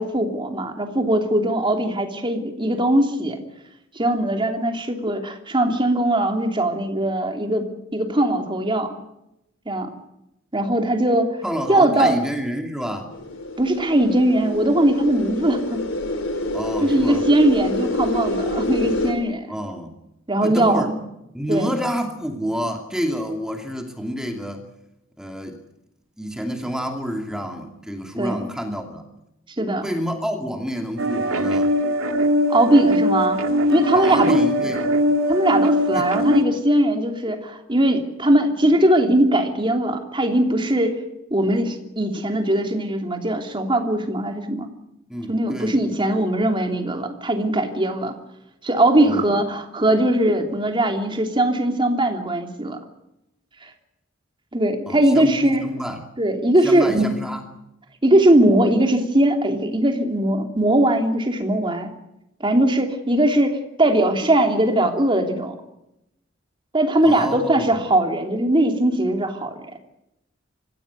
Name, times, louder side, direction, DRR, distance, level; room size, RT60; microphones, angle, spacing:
voice 1, 0.0-3.4 3.9-8.9 9.7-9.9 10.5-11.4 11.7-12.2 13.6-15.8 16.8-19.5 20.3-21.0 21.5-21.7 28.2-28.4 29.6-29.9 32.5-33.4 33.7-34.4 35.3-41.0 41.3-44.7 45.3-48.2 48.6-52.8 53.6-53.7 54.5-55.6 56.2-57.1 58.0-61.9 62.4-65.5 66.7-69.6, right 1 dB, 25° right, 4 dB, 3.1 m, -20 dB
voice 2, 11.4-13.1 16.5-17.2 19.5-20.0 20.4-20.9 21.3-24.6 25.2-25.6 26.2-29.0 29.8-31.7 33.9-34.8 35.9-36.1 45.1-45.8 49.0-49.4 54.9-56.0 56.6-57.4 67.0-67.8, equal, 5° right, 4 dB, 2.6 m, -28 dB
sound 1, 13.1-19.1, left 1 dB, 65° left, 4.9 m, -27 dB
sound 2, 31.0-36.4, equal, 90° right, 2.2 m, -21 dB
25.0 x 16.5 x 9.5 m, 0.87 s
head